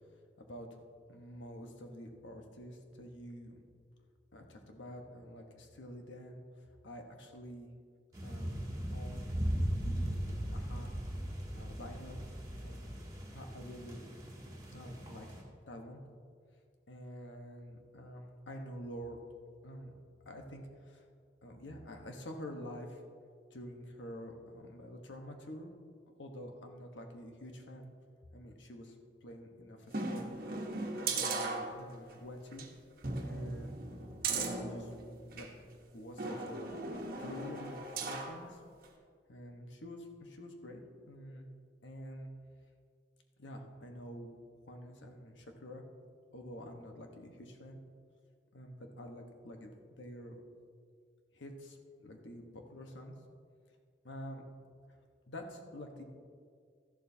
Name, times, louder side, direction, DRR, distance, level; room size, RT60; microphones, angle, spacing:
voice 1, 0.4-0.8 1.1-3.6 4.3-6.4 6.8-7.7 8.2-8.6 8.9-9.3 9.8-10.9 11.5-12.2 12.6-13.0 13.3-14.0 14.7-15.3 15.7-16.0 16.9-19.2 19.6-19.9 20.2-21.0 21.4-23.0 23.5-25.7 26.2-27.9 28.3-30.3 31.1-32.7 33.2-33.7 34.3-34.9 35.3-35.5 35.9-36.7 37.2-38.6 39.3-40.8 41.1-41.5 41.8-42.3 43.4-45.8 46.3-47.8 48.5-50.4 51.3-53.1 54.0-54.4 55.3-56.0, equal, 90° left, 3 dB, 1.2 m, -47 dB
sound 1, 8.1-15.4, equal, 20° right, 1.7 m, -38 dB
sound 2, 29.9-32.1 32.5-32.7 33.0-35.5 36.2-38.4 38.8-38.9, right 3 dB, 50° right, 1.2 m, -38 dB
13.5 x 11.5 x 2.8 m, 2.1 s
head